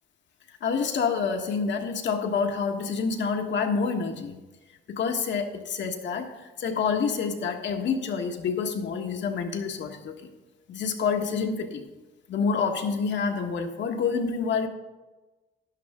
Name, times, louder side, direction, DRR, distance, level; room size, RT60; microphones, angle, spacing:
voice 1, 0.6-4.3 4.9-6.3 6.6-10.1 10.7-11.8 12.3-14.7, left 5 dB, 65° left, 4 dB, 1.5 m, -27 dB
12.0 x 10.5 x 3.6 m, 1.1 s
cardioid pair, 90°, 20 cm